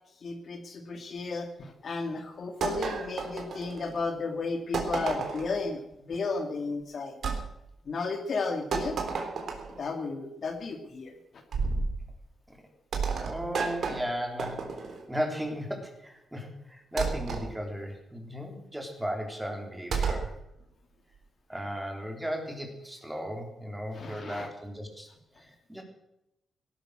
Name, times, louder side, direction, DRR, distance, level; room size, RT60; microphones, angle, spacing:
voice 1, 0.2-5.8 6.1-7.1 7.9-9.0 9.7-11.1 23.9-24.5, left 4 dB, 45° left, 5 dB, 2.4 m, -33 dB
sound 1, 2.6-4.0 4.7-5.6 7.2-7.4 8.7-9.8 11.5-11.9 12.9-15.0 17.0-17.5 19.9-20.3, right 5 dB, 60° right, 3.5 m, -31 dB
voice 2, 13.2-20.3 21.5-25.1 25.4-25.8, equal, 5° right, 3 dB, 3.5 m, -36 dB
18.0 x 12.5 x 6.4 m, 0.84 s
wide cardioid pair, 140°, 0 cm